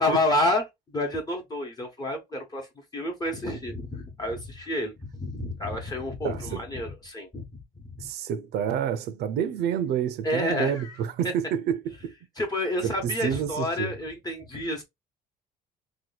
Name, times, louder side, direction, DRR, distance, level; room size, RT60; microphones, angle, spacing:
voice 1, 0.0-2.7 2.9-7.5 7.8-8.1 10.2-11.0 11.2-11.3 12.4-14.8, left 1 dB, 25° left, 1.0 m, -29 dB
voice 2, 6.2-6.6 8.0-12.1 12.8-13.9, right 9 dB, 75° right, 0.6 m, -29 dB
2.9 x 2.3 x 4.0 m
cardioid pair, 110°, 17 cm